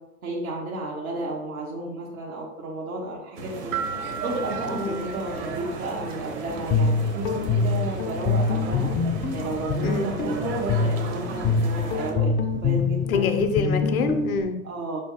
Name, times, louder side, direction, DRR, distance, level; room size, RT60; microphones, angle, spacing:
voice 1, 0.2-3.7 4.2-8.9 9.3-13.3 14.6-15.0, right 2 dB, 75° right, -3 dB, 1.1 m, -32 dB
sound 1, 3.4-12.1, right 3 dB, 55° right, 1.0 m, -36 dB
sound 2, 3.7-6.4, right 7 dB, 25° right, 0.4 m, -35 dB
voice 2, 4.7-5.0 9.8-10.1 13.1-14.6, left 4 dB, 75° left, 7 dB, 0.7 m, -26 dB
Guitar, 6.4-14.4, left 4 dB, 25° left, 0.5 m, -25 dB
5.5 x 3.3 x 2.9 m, 0.94 s
figure-of-eight pair, 90°, 44 cm